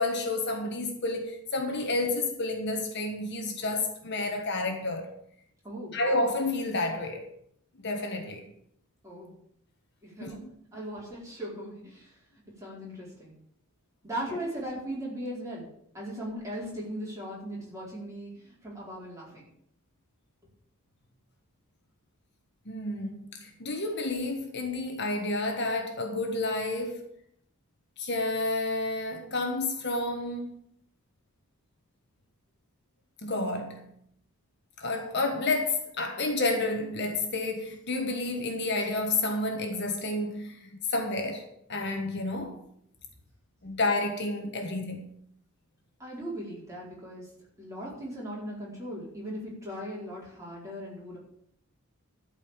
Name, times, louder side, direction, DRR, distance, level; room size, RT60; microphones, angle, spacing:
voice 1, 0.0-5.1 5.9-7.3 7.8-8.5 10.2-10.5 22.7-27.0 28.0-30.5 33.2-33.9 34.8-42.6 43.6-45.1, left 2 dB, 50° left, 1.4 m, -30 dB
voice 2, 5.6-6.0 9.0-9.3 10.0-10.4 10.7-12.2 12.6-13.3 14.0-15.7 15.9-19.5 46.0-47.3 47.6-51.2, equal, 15° right, 4.5 m, -38 dB
12.5 x 5.2 x 9.0 m
head